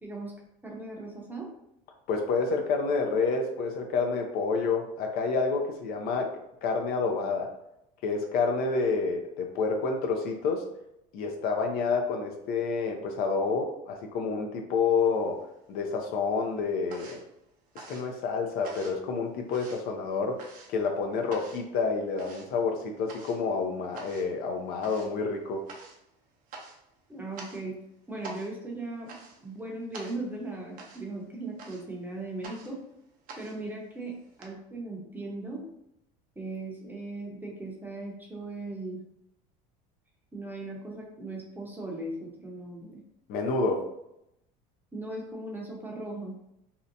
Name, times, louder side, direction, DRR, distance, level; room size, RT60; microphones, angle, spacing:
voice 1, 0.0-0.3 0.6-1.5 27.1-27.8 28.1-29.1 29.4-32.8 33.4-35.6 36.4-39.0 40.3-43.0 44.9-46.3, right 2 dB, 10° right, -2 dB, 0.7 m, -38 dB
voice 2, 2.1-6.3 6.6-7.5 8.0-10.6 11.1-15.4 15.7-17.2 17.7-25.6 43.3-43.9, left 4 dB, 60° left, 3 dB, 0.5 m, -29 dB
sound 1, 15.1-15.9 16.2-34.5, right 3 dB, 50° right, 0.6 m, -48 dB
2.7 x 2.1 x 2.6 m, 0.81 s
supercardioid pair, 115°, 18 cm